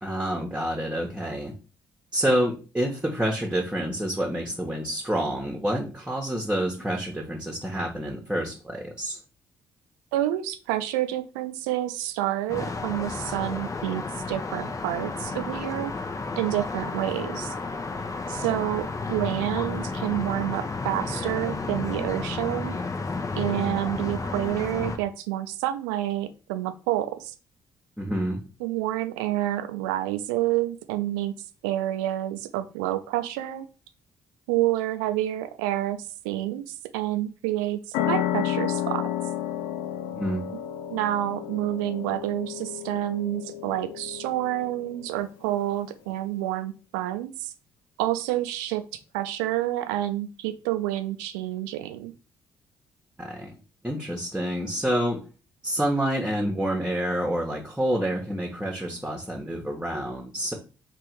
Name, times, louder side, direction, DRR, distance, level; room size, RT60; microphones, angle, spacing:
voice 1, 0.0-1.5 2.1-9.2 28.0-28.4 40.1-40.5 53.2-53.6 53.8-55.2 55.6-60.5, right 1 dB, 10° right, 0 dB, 1.2 m, -28 dB
voice 2, 10.1-14.0 14.3-15.9 16.4-17.5 18.3-22.8 23.3-27.3 28.6-31.3 31.6-33.7 34.5-36.0 36.2-39.1 40.9-47.5 48.0-48.8 49.1-52.1, right 14 dB, 80° right, 10 dB, 0.5 m, -28 dB
sound 1, 12.5-25.0, left 3 dB, 35° left, 0.8 m, -32 dB
sound 2, 37.9-45.1, left 11 dB, 75° left, 0.4 m, -31 dB
3.5 x 2.5 x 4.6 m, 0.34 s
hypercardioid pair, 45°, 10 cm